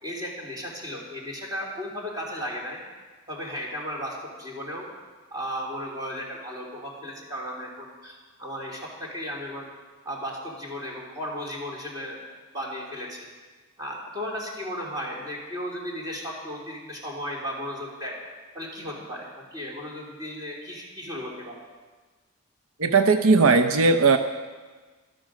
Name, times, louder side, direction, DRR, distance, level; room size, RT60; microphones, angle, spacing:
voice 1, 0.0-2.8 3.3-4.9 5.3-9.7 10.0-12.2 12.5-13.3 13.8-18.2 18.5-21.6, equal, 20° right, -2 dB, 3.1 m, -35 dB
voice 2, 22.8-24.2, right 4 dB, 80° right, 8 dB, 0.7 m, -18 dB
13.0 x 12.5 x 6.3 m, 1.4 s
head